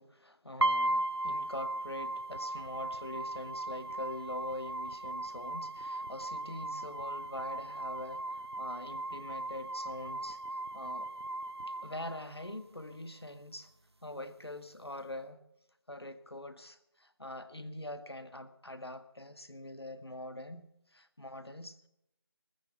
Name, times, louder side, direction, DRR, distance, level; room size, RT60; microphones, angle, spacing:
voice 1, 0.0-8.2 8.6-10.4 10.7-11.1 11.8-13.7 14.0-15.4 15.9-21.9, left 1 dB, 80° left, 10 dB, 1.8 m, -44 dB
sound 1, 0.6-12.6, right 1 dB, 90° right, 0.7 m, -37 dB
15.0 x 13.5 x 5.7 m, 0.79 s
figure-of-eight pair, 170°, 13 cm